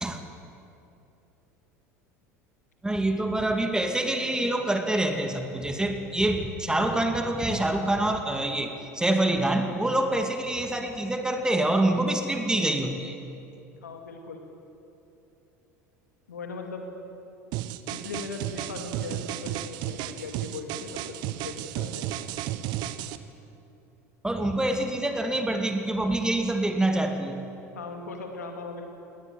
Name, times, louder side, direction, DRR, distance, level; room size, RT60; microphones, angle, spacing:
voice 1, 2.8-13.2 24.2-27.4, right 1 dB, 10° right, 5 dB, 2.5 m, -26 dB
voice 2, 13.8-14.4 16.3-16.9 17.9-22.0 27.8-28.9, left 4 dB, 85° left, 3 dB, 2.4 m, -39 dB
sound 1, 17.5-23.2, right 13 dB, 55° right, 1.1 m, -33 dB
19.5 x 19.0 x 9.2 m, 2.8 s
hypercardioid pair, 75°, 9 cm